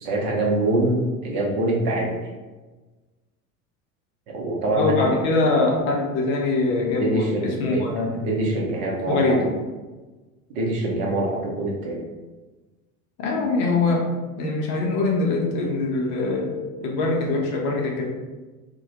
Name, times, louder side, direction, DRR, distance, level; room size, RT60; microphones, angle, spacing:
voice 1, 0.0-2.2 4.3-5.1 6.9-7.8 8.1-9.5 10.5-12.0, right 2 dB, 50° right, -2 dB, 0.7 m, -24 dB
voice 2, 4.7-8.1 9.1-9.4 13.2-14.1 14.4-18.1, left 3 dB, 40° left, -1 dB, 0.6 m, -23 dB
2.1 x 2.1 x 2.8 m, 1.2 s
figure-of-eight pair, 70°, 44 cm